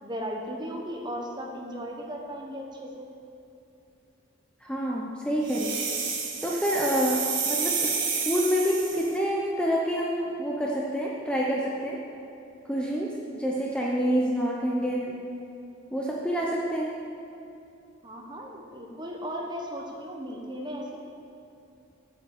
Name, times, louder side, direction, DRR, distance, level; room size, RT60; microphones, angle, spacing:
voice 1, 0.0-3.1 18.0-21.0, equal, 20° right, 0 dB, 1.1 m, -36 dB
voice 2, 4.6-5.8 6.4-8.0 8.2-12.0 12.7-15.2 15.9-17.0, equal, 5° left, -3 dB, 0.7 m, -27 dB
sound 1, 5.5-9.1, right 5 dB, 70° right, 1.7 m, -30 dB
8.4 x 7.7 x 7.2 m, 2.8 s
head